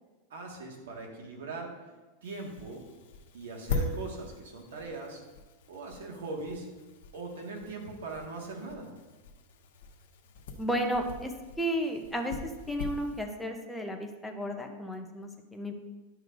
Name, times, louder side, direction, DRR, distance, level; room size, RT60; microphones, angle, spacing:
voice 1, 0.3-1.7 2.2-2.8 3.3-5.2 5.7-6.7 7.1-8.9, right 3 dB, 90° right, 1 dB, 1.8 m, -40 dB
sound 1, 2.2-13.3, left 3 dB, 80° left, 1.0 m, -41 dB
voice 2, 10.6-11.3 11.6-12.4 12.7-15.7, equal, 5° left, 2 dB, 0.8 m, -33 dB
10.5 x 6.5 x 2.6 m, 1.2 s
supercardioid pair, 150°, 0 cm